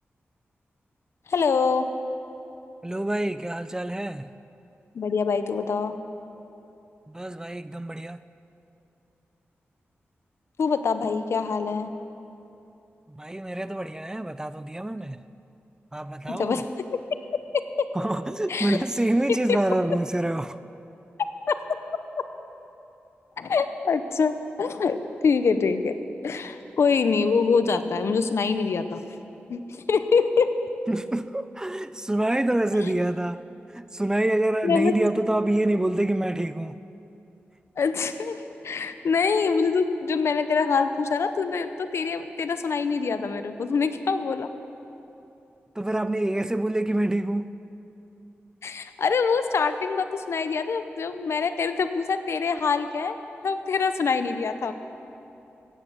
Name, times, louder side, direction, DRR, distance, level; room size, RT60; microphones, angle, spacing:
voice 1, 1.3-1.9 4.9-5.9 10.6-11.9 16.3-16.7 17.8-17.9 18.5-18.8 21.5-21.6 23.4-26.0 26.2-29.0 29.5-30.5 34.6-34.9 37.8-38.4 38.6-44.5 48.6-53.2 53.4-54.7, left 5 dB, 75° left, 0.8 m, -24 dB
voice 2, 2.8-4.3 7.1-8.2 13.1-15.2 15.9-16.6 17.9-20.6 30.9-33.4 33.7-36.8 45.8-47.5, right 1 dB, 15° right, 0.4 m, -26 dB
16.0 x 9.4 x 7.0 m
cardioid pair, 65°, 4 cm